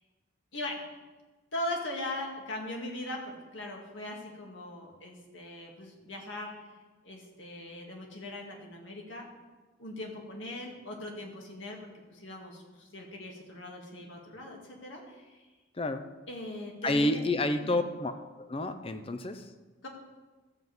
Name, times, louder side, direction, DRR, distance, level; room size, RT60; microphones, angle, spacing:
voice 1, 0.5-0.9 1.5-6.8 7.0-9.3 9.8-15.5 16.3-17.2 17.6-17.8 19.8-19.9, left 1 dB, 70° left, 0 dB, 2.2 m, -40 dB
voice 2, 16.8-18.1 18.4-19.5, left 1 dB, 30° left, 9 dB, 0.6 m, -29 dB
13.0 x 5.3 x 7.9 m, 1.3 s
head